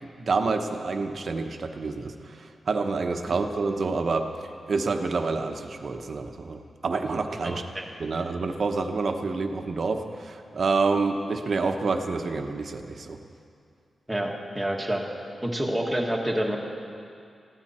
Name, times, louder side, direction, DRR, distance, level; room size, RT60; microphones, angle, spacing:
voice 1, 0.0-4.3 4.7-7.6 8.0-13.2, right 4 dB, 45° right, 5 dB, 1.0 m, -28 dB
voice 2, 7.4-7.8 14.1-15.0 15.4-16.6, right 1 dB, 5° right, -1 dB, 1.6 m, -28 dB
21.0 x 15.5 x 4.4 m, 2.4 s
wide cardioid pair, 175°, 0 cm